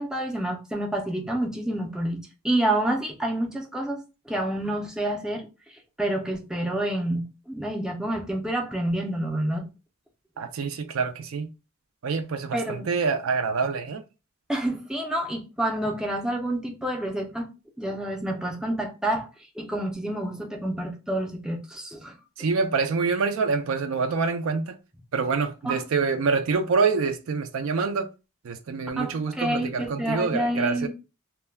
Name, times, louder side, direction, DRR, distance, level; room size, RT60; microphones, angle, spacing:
voice 1, 0.0-5.5 6.0-9.6 12.5-12.9 14.5-17.5 17.8-19.3 19.6-22.1 25.6-25.8 29.0-30.9, right 1 dB, 5° right, 0.4 m, -28 dB
voice 2, 10.4-11.5 12.0-14.0 22.4-24.8 25.1-28.1 28.4-30.9, right 4 dB, 65° right, 0.4 m, -26 dB
2.2 x 2.1 x 3.2 m
head